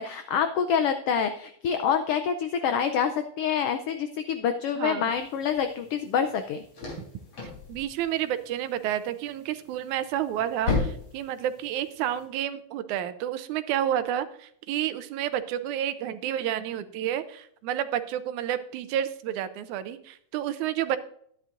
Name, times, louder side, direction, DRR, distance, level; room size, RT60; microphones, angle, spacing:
voice 1, 0.0-6.6, left 7 dB, 85° left, 8 dB, 1.3 m, -26 dB
voice 2, 4.8-5.1 7.7-21.0, right 11 dB, 90° right, 12 dB, 2.1 m, -30 dB
sound 1, 5.1-12.2, left 4 dB, 55° left, 4.7 m, -36 dB
12.5 x 10.5 x 2.5 m, 0.66 s
omnidirectional pair, 3.4 m